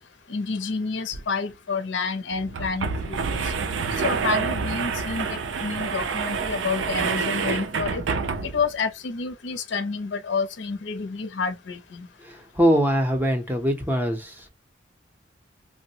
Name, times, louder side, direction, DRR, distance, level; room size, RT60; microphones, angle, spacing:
voice 1, 0.3-3.4 4.0-8.0 8.4-12.1, left 4 dB, 70° left, 0.6 m, -29 dB
sound 1, 1.1-1.2 1.5-1.6 2.3-8.7, right 5 dB, 80° right, 0.5 m, -28 dB
voice 2, 12.6-14.5, equal, 10° right, 0.5 m, -22 dB
3.1 x 2.0 x 2.7 m
head